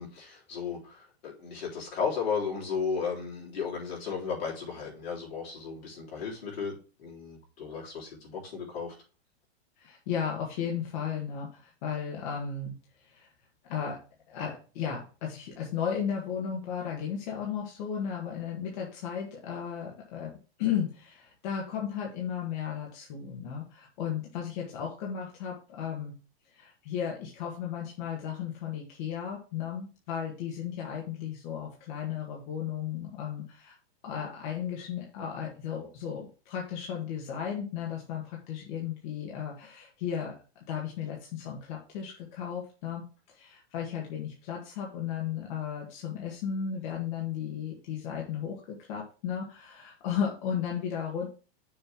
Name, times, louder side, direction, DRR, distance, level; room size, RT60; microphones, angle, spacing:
voice 1, 0.0-8.9, left 6 dB, 75° left, -3 dB, 3.4 m, -34 dB
voice 2, 9.8-12.7 13.0-13.3 13.7-14.0 14.3-20.3 20.6-26.1 26.5-33.8 34.0-40.3 40.7-51.3, left 8 dB, 50° left, -2 dB, 1.7 m, -35 dB
6.6 x 3.3 x 6.0 m, 0.36 s
supercardioid pair, 155°, 31 cm